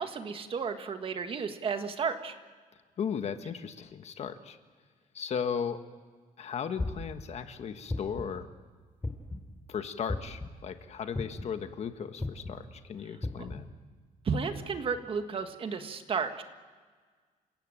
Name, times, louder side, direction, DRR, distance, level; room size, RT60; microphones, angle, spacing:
voice 1, 0.0-2.3 14.2-16.4, right 5 dB, 40° right, 8 dB, 1.7 m, -33 dB
voice 2, 3.0-4.6 5.1-5.8 6.4-8.5 9.7-13.7, left 7 dB, 50° left, 8 dB, 1.5 m, -36 dB
sound 1, 6.8-7.2 7.9-8.4 9.0-9.5 10.1-10.5 11.1-11.6 12.2-12.5 13.2-13.6, left 2 dB, 15° left, 2.6 m, -34 dB
29.0 x 16.5 x 9.0 m, 1.5 s
cardioid pair, 145°, 14 cm